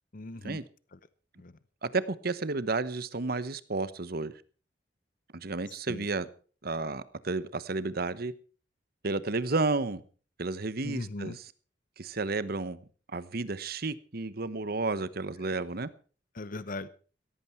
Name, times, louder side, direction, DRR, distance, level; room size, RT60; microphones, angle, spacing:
voice 1, 0.1-0.6 0.9-1.0 1.4-1.5 5.9-6.0 10.8-11.4 16.3-16.9, left 2 dB, 50° left, 0.9 m, -38 dB
voice 2, 1.8-4.3 5.3-6.3 6.6-8.3 9.0-10.0 10.4-11.5 12.0-12.8 13.1-15.9, right 3 dB, 55° right, 1.1 m, -32 dB
17.0 x 14.5 x 4.5 m
head